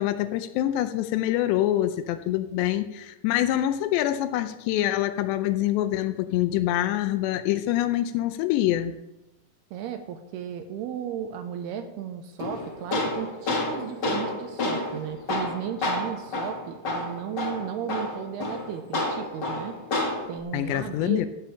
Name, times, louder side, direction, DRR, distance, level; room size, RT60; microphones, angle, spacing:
voice 1, 0.0-8.9 20.5-21.3, left 13 dB, 80° left, 11 dB, 2.7 m, -25 dB
voice 2, 9.7-19.8 20.3-21.3, right 9 dB, 75° right, 7 dB, 2.5 m, -35 dB
Tools, 12.4-20.4, left 2 dB, 55° left, 1.1 m, -30 dB
14.5 x 5.4 x 8.6 m, 0.94 s
omnidirectional pair, 5.2 m